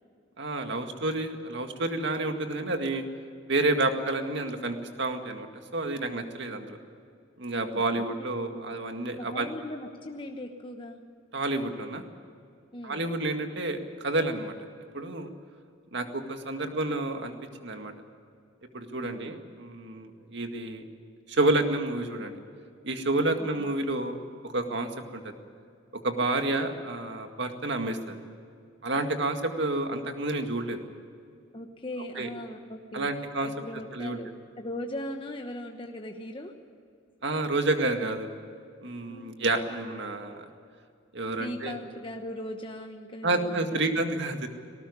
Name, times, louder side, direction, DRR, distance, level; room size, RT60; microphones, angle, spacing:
voice 1, 0.4-3.0 3.5-5.5 5.7-6.8 7.4-9.5 11.3-12.0 12.8-14.5 14.9-15.3 15.9-17.3 17.6-17.9 18.7-20.8 21.3-22.3 22.8-25.3 26.0-28.2 28.8-30.8 32.2-32.3 32.9-33.5 33.9-34.2 37.2-38.3 38.8-40.4 41.1-41.8 43.2-44.5, right 2 dB, 60° right, 5 dB, 2.0 m, -29 dB
voice 2, 8.0-8.3 8.5-8.7 9.2-11.0 12.7-13.0 19.0-19.3 23.4-23.5 31.5-33.1 33.4-34.3 34.6-36.5 39.1-39.4 41.4-44.0, left 1 dB, 25° left, 3 dB, 1.1 m, -39 dB
19.0 x 18.5 x 9.7 m, 2.3 s
head